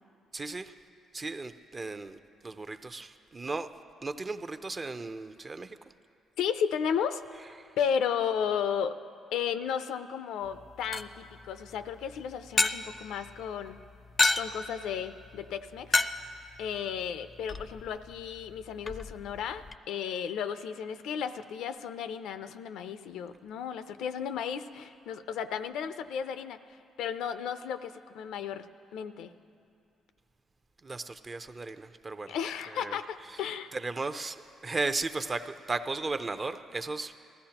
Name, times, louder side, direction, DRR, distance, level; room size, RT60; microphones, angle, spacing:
voice 1, 0.3-0.7 1.1-3.7 4.0-5.8 7.6-7.8 30.8-32.3 32.7-33.0 33.3-33.4 33.7-37.2, right 3 dB, 30° right, 10 dB, 0.5 m, -36 dB
voice 2, 6.4-7.2 7.8-8.9 9.3-13.8 14.3-16.0 16.6-26.6 27.0-28.7 28.9-29.3 32.3-33.7, left 7 dB, 85° left, 10 dB, 0.5 m, -34 dB
sound 1, 10.4-19.8, left 3 dB, 20° left, 0.4 m, -34 dB
19.5 x 15.0 x 2.9 m, 2.4 s
cardioid pair, 90°, 0 cm